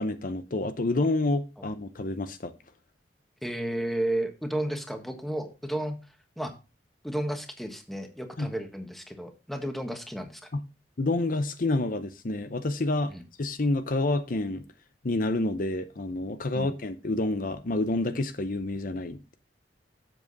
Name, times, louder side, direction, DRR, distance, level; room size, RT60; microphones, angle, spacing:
voice 1, 0.0-2.5 8.4-8.5 10.5-10.6 11.0-14.6 15.0-19.4, left 2 dB, 50° left, 10 dB, 0.7 m, -28 dB
voice 2, 3.4-6.0 6.4-6.5 7.0-10.4 13.1-13.2 16.5-16.7, right 1 dB, ahead, 5 dB, 1.3 m, -32 dB
7.7 x 7.5 x 4.0 m, 0.31 s
head